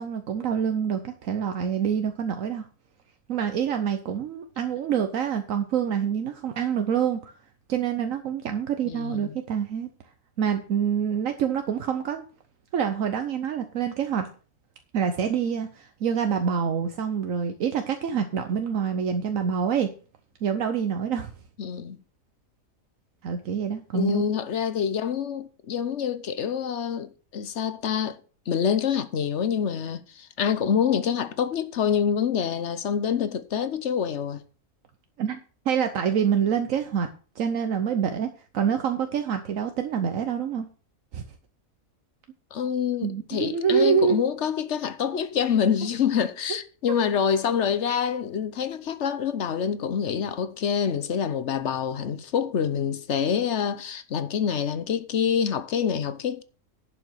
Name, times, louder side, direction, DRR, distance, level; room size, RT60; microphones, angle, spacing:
voice 1, 0.0-2.7 3.3-7.3 7.7-9.9 10.4-12.2 12.7-14.3 14.9-19.9 20.4-21.3 23.2-24.2 35.2-35.4 35.7-37.1 37.4-38.3 38.5-40.6 41.1-41.2 43.0-44.2, right 7 dB, 75° right, 1.3 m, -26 dB
voice 2, 8.9-9.4 21.6-22.0 23.9-28.2 28.5-34.4 42.5-56.4, left 7 dB, 60° left, 1.1 m, -26 dB
11.0 x 5.8 x 6.4 m
omnidirectional pair, 1.4 m